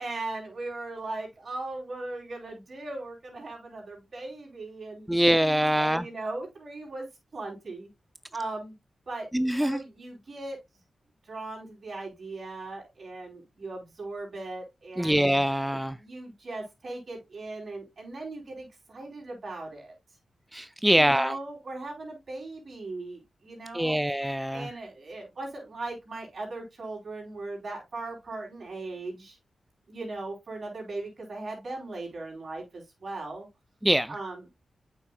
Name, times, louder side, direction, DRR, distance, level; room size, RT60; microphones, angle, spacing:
voice 1, 0.0-7.1 7.3-7.9 8.3-8.7 9.1-10.6 11.2-15.3 15.7-19.9 20.9-24.0 24.5-29.4 29.9-33.5 34.1-34.5, right 2 dB, 60° right, 3.8 m, -38 dB
voice 2, 5.1-6.0 9.3-9.8 15.0-16.0 20.5-21.4 23.7-24.7 33.8-34.1, equal, 5° right, 0.3 m, -24 dB
8.2 x 5.6 x 2.3 m
cardioid pair, 60°, 0 cm